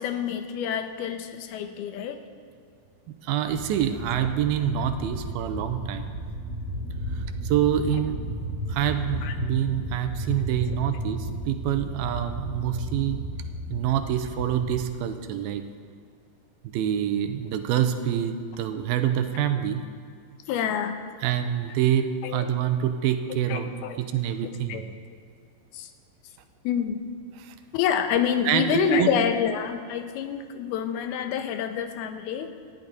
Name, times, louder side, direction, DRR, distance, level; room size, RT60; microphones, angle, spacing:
voice 1, 0.0-2.2 9.2-9.3 20.5-20.9 22.2-22.5 23.5-24.0 24.7-24.8 25.7-25.9 26.6-27.0 27.7-32.5, left 8 dB, 90° left, 8 dB, 2.8 m, -27 dB
voice 2, 3.1-6.1 7.1-8.2 8.7-13.2 13.7-15.6 16.6-19.8 21.2-24.8 27.4-27.5 28.5-29.1, right 10 dB, 85° right, 8 dB, 2.6 m, -26 dB
sound 1, 3.5-14.8, equal, 55° right, 0.6 m, -34 dB
19.0 x 13.5 x 4.1 m, 2.2 s
omnidirectional pair, 4.4 m